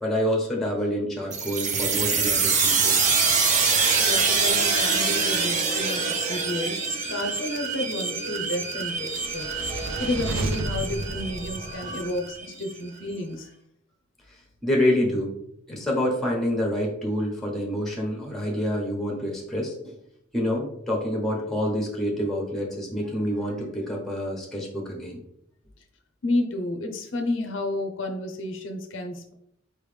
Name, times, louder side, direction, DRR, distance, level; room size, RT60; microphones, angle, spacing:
voice 1, 0.0-3.1 11.9-12.0 14.3-15.3 15.7-19.8 20.3-25.2, equal, ahead, -1 dB, 1.0 m, -27 dB
sound 1, 1.3-12.7, right 4 dB, 40° right, 0.6 m, -25 dB
voice 2, 4.0-13.5 26.2-29.3, left 1 dB, 70° left, 3 dB, 0.6 m, -31 dB
sound 2, 8.8-12.3, right 2 dB, 80° right, 0.5 m, -33 dB
4.7 x 3.2 x 3.3 m, 0.74 s
head